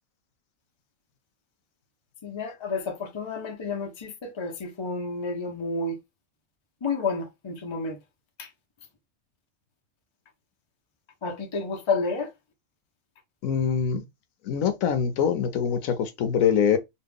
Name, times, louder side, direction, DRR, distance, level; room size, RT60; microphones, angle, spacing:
voice 1, 2.2-6.0 6.8-8.0 8.4-8.5 11.2-12.3, left 4 dB, 30° left, 0.5 m, -30 dB
voice 2, 13.4-14.0 14.4-16.8, left 7 dB, 75° left, 1.0 m, -24 dB
3.1 x 2.4 x 3.4 m
omnidirectional pair, 1.4 m